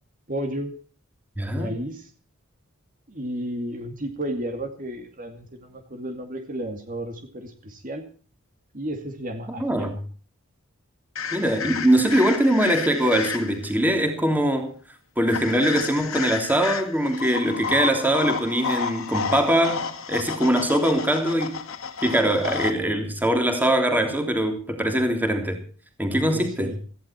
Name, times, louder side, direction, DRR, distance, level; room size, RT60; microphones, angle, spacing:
voice 1, 0.3-0.7 1.5-2.1 3.1-8.0 8.7-9.9 26.1-26.8, right 1 dB, 40° right, 2.4 m, -32 dB
voice 2, 1.4-1.7 9.5-10.0 11.3-14.7 15.2-21.6 22.0-25.6 26.0-26.7, right 1 dB, 10° right, 3.2 m, -22 dB
sound 1, 11.2-13.7 15.3-22.7, left 6 dB, 70° left, 2.4 m, -31 dB
18.0 x 15.0 x 4.4 m
head